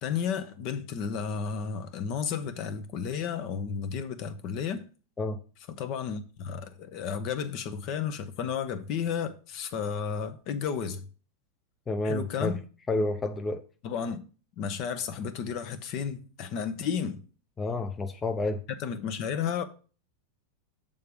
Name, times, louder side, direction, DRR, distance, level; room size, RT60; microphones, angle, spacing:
voice 1, 0.0-4.8 5.8-11.1 12.0-12.6 13.8-14.2 14.6-17.2 18.7-19.6, left 7 dB, 50° left, 0.8 m, -32 dB
voice 2, 11.9-12.6 12.9-13.6 17.6-18.6, left 2 dB, 20° left, 0.6 m, -29 dB
6.7 x 3.5 x 5.3 m
hypercardioid pair, 105°, 0 cm